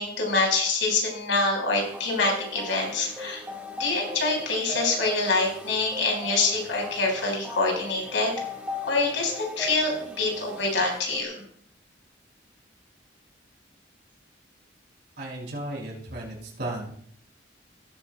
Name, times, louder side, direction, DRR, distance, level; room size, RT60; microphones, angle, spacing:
voice 1, 0.0-3.4 3.8-8.3 8.9-11.4, left 3 dB, 90° left, 0 dB, 4.5 m, -25 dB
sound 1, 1.7-11.2, equal, 10° right, 1.5 m, -39 dB
voice 2, 15.2-16.9, right 1 dB, 60° right, -2 dB, 4.9 m, -34 dB
18.0 x 9.0 x 2.2 m, 0.63 s
head